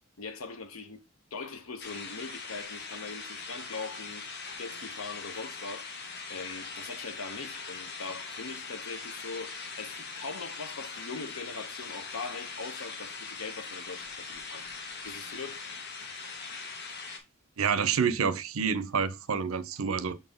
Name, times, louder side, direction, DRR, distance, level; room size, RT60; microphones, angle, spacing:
voice 1, 0.2-1.0 1.3-4.2 4.6-5.9 6.3-14.7 15.0-16.2, left 4 dB, 85° left, 0.9 m, -41 dB
sound 1, 1.8-17.2, left 4 dB, 55° left, 1.3 m, -41 dB
voice 2, 17.6-20.2, right 6 dB, 85° right, 0.6 m, -28 dB
6.5 x 4.2 x 3.6 m
head